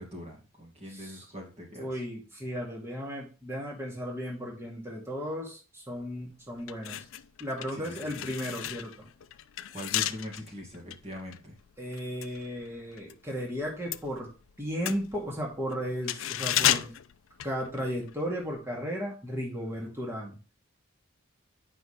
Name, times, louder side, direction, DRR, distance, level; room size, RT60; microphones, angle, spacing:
voice 1, 0.0-2.0 7.7-8.3 9.7-11.6 19.8-19.9, left 1 dB, 30° right, -2 dB, 2.1 m, -42 dB
voice 2, 0.9-1.2 1.8-7.0 7.4-9.1 11.8-14.3 14.6-16.9 17.4-20.4, equal, 10° right, -2 dB, 2.2 m, -35 dB
sound 1, 6.0-6.2 6.6-13.2 13.5-18.1 18.4-18.6, left 12 dB, 65° left, 0.4 m, -33 dB
9.0 x 5.7 x 3.3 m, 0.34 s
head